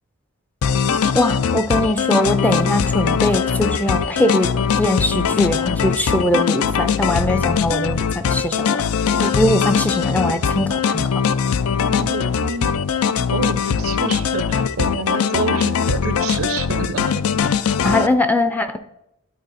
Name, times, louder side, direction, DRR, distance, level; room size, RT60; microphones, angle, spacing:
sound 1, 0.6-18.1, left 6 dB, 85° left, 0.4 m, -21 dB
voice 1, 1.1-4.5 4.8-8.8 9.2-11.1 17.8-18.8, left 1 dB, 5° left, 9 dB, 0.4 m, -21 dB
sound 2, 2.1-8.9, left 3 dB, 40° left, 0.9 m, -40 dB
voice 2, 11.9-12.7 13.3-17.0, right 4 dB, 75° right, 13 dB, 0.6 m, -28 dB
11.0 x 4.3 x 4.1 m, 0.87 s
head